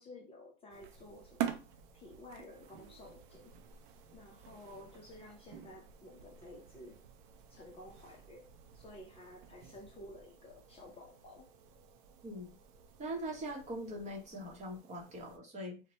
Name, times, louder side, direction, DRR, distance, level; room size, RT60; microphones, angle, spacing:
voice 1, 0.0-1.6 1.9-3.5 4.1-7.0 7.5-11.5, left 1 dB, 20° left, 0.5 m, -53 dB
sound 1, 0.7-15.4, right 10 dB, 55° right, 0.6 m, -48 dB
voice 2, 12.2-12.6 13.0-15.8, right 1 dB, 25° right, 0.9 m, -42 dB
2.9 x 2.1 x 2.9 m
hypercardioid pair, 115°, 29 cm